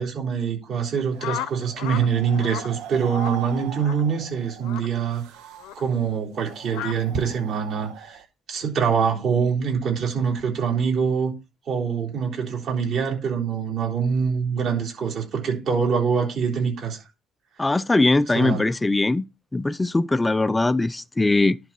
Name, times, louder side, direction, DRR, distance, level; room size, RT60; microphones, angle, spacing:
voice 1, 0.0-5.2 5.8-8.2 8.5-11.3 11.7-17.0 18.3-18.6, right 6 dB, 45° right, 3.9 m, -24 dB
sound 1, 1.1-8.2, right 10 dB, 85° right, 1.4 m, -40 dB
sound 2, 1.2-2.1 2.4-2.7 3.1-3.4 3.8-4.0 4.6-4.9 5.6-5.8 6.7-7.0, left 12 dB, 80° left, 0.7 m, -33 dB
voice 2, 17.6-19.2 19.5-21.6, left 2 dB, 10° left, 0.4 m, -21 dB
11.0 x 4.0 x 5.9 m
cardioid pair, 145°, 0 cm